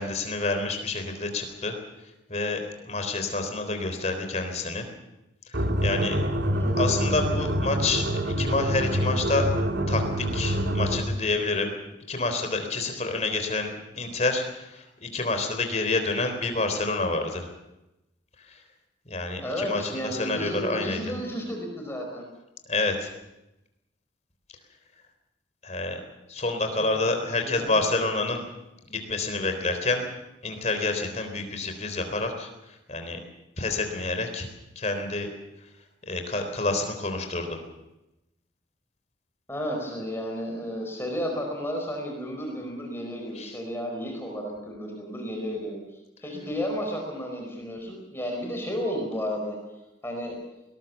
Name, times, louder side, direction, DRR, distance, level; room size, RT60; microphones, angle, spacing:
voice 1, 0.0-1.7 2.3-4.8 5.5-6.2 6.8-9.5 9.9-11.7 12.1-17.5 18.5-18.6 19.1-21.0 22.7-23.1 25.6-26.0 26.3-28.5 28.9-30.0 30.4-32.5 32.9-33.2 33.6-34.5 34.8-35.3 36.1-37.6 43.4-43.5, left 3 dB, 35° left, 6 dB, 3.8 m, -28 dB
sound 1, 5.5-11.2, equal, 65° right, 2.3 m, -26 dB
voice 2, 6.4-6.9 19.4-22.3 26.7-27.8 39.5-45.8 46.2-49.6 50.0-50.3, equal, 10° left, 1 dB, 4.8 m, -33 dB
21.0 x 19.5 x 7.1 m, 0.93 s
head